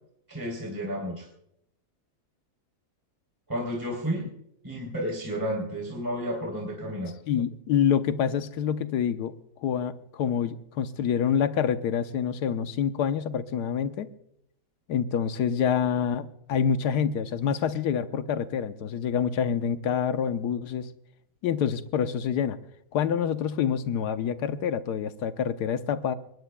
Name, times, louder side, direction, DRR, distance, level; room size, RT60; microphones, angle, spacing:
voice 1, 0.3-1.3 3.5-4.3 4.6-7.1, equal, 10° right, -1 dB, 3.2 m, -31 dB
voice 2, 7.3-9.3 9.6-14.1 14.9-20.9 21.4-22.6 22.9-26.1, left 8 dB, 90° left, 11 dB, 1.4 m, -27 dB
21.5 x 18.5 x 2.2 m, 0.75 s
omnidirectional pair, 1.7 m